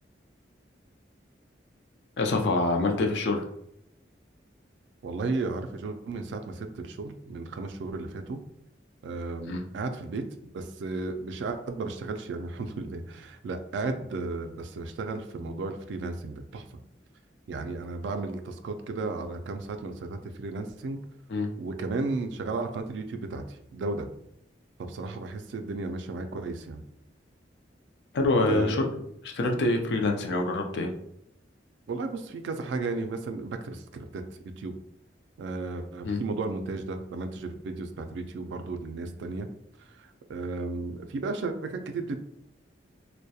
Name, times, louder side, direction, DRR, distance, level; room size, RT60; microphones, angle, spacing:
voice 1, 2.2-3.5 9.5-9.6 21.3-21.5 28.1-28.9 29.2-30.9 36.0-36.2, left 2 dB, 70° left, 3 dB, 0.4 m, -25 dB
voice 2, 5.0-8.4 9.0-10.3 10.5-16.6 17.5-21.0 21.6-23.4 23.7-24.1 24.8-26.8 28.5-28.8 31.9-34.2 34.6-34.7 35.4-39.5 40.0-42.2, right 3 dB, 75° right, 7 dB, 0.3 m, -34 dB
2.7 x 2.1 x 2.2 m, 0.74 s
head